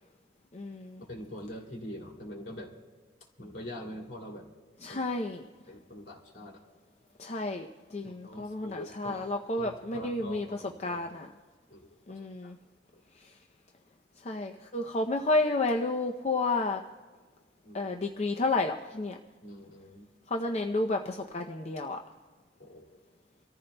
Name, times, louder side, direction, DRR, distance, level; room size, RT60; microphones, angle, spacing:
voice 1, 0.5-1.0 4.8-5.5 7.2-10.5 10.8-11.3 12.1-12.6 14.2-16.8 17.7-19.2 20.3-22.0, left 2 dB, 35° left, 3 dB, 0.6 m, -31 dB
voice 2, 1.1-2.7 3.4-4.5 4.9-5.0 5.7-6.6 8.2-9.2 9.6-11.0 11.7-12.5 12.9-13.0 17.6-17.9 19.4-20.1 22.6-22.9, equal, 65° left, 0 dB, 2.8 m, -44 dB
28.5 x 14.5 x 2.2 m, 1.5 s
head